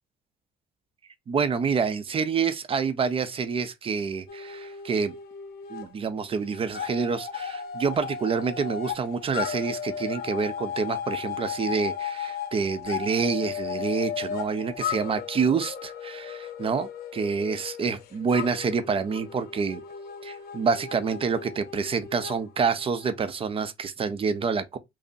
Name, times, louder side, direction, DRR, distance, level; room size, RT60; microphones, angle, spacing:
voice 1, 1.3-5.1 5.7-19.8 20.2-24.8, right 5 dB, 35° right, 0.5 m, -27 dB
sound 1, 4.3-5.9 6.2-23.3, left 8 dB, 65° left, 0.7 m, -35 dB
5.1 x 2.0 x 2.6 m
cardioid pair, 110°, 17 cm